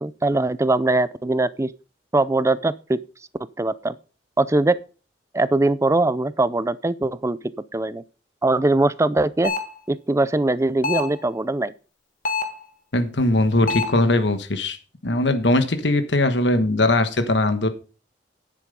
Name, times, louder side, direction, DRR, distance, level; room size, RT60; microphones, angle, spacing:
voice 1, 0.0-1.7 2.1-3.0 3.6-3.9 4.4-4.8 5.3-7.4 7.7-8.0 8.4-9.5 9.9-11.7, right 2 dB, 15° right, 0.5 m, -21 dB
sound 1, 9.4-9.8 10.8-11.2 12.2-12.7 13.7-14.0, left 4 dB, 50° left, 1.5 m, -26 dB
voice 2, 12.9-14.8 15.0-17.7, left 2 dB, 75° left, 1.3 m, -20 dB
10.0 x 7.6 x 5.3 m
head